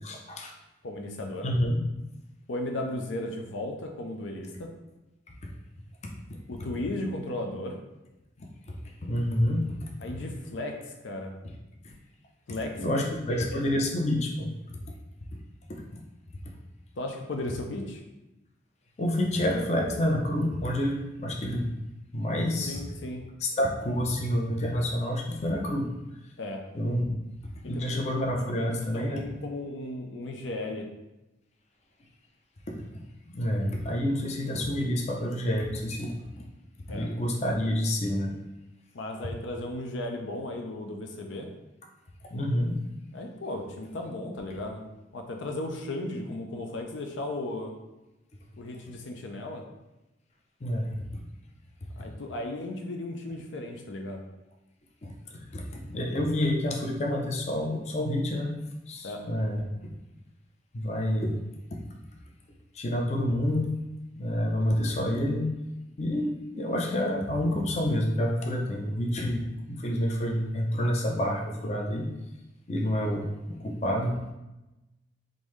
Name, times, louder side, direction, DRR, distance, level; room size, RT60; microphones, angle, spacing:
voice 1, 0.0-0.5 1.4-1.8 5.4-5.5 6.3-6.4 8.4-8.8 9.0-9.7 11.8-11.9 12.8-14.5 15.7-15.8 19.0-21.7 22.1-22.8 23.4-25.9 26.7-27.2 27.6-29.2 32.7-32.9 33.3-36.2 36.9-38.3 42.3-42.8 50.6-51.2 52.0-52.1 55.0-58.5 58.9-59.6 60.7-61.4 62.7-63.7 64.2-65.5 66.0-72.1 72.7-74.3, left 1 dB, 40° left, 0 dB, 0.5 m, -28 dB
voice 2, 0.8-1.5 2.5-4.7 6.5-7.8 10.0-11.3 12.5-13.0 13.3-13.8 17.0-18.0 22.7-23.2 26.4-26.6 27.6-27.8 28.3-30.9 36.9-37.1 38.9-41.5 43.1-44.8 45.1-47.7 48.6-49.6 52.0-54.2 59.0-59.2 73.0-73.1, left 1 dB, 90° left, 3 dB, 0.5 m, -35 dB
3.7 x 2.6 x 3.1 m, 0.99 s
head